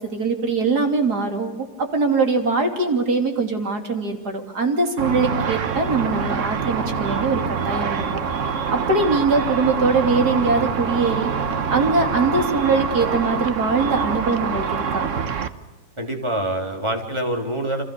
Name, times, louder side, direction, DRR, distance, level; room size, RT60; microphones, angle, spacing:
voice 1, 0.0-8.0 8.7-11.3 11.7-15.1, right 3 dB, 65° right, 4 dB, 3.6 m, -22 dB
Car / Traffic noise roadway noise / Engine, 5.0-15.5, right 6 dB, 50° right, 1.4 m, -25 dB
voice 2, 16.0-17.8, right 1 dB, 15° right, 3 dB, 3.6 m, -25 dB
29.5 x 26.0 x 6.7 m, 1.2 s
omnidirectional pair, 1.9 m